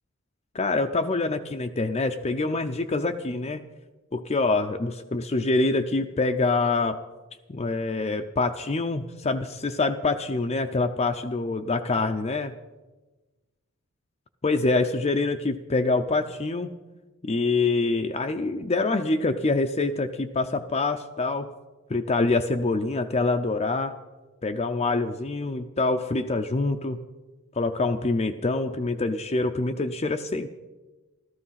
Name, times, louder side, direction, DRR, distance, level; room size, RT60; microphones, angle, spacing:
voice 1, 0.5-3.6 4.1-7.0 7.5-12.5 14.4-16.7 17.2-21.5 21.9-23.9 24.4-27.0 27.5-30.5, left 3 dB, 30° left, 5 dB, 0.5 m, -25 dB
14.5 x 13.5 x 5.7 m, 1.2 s
head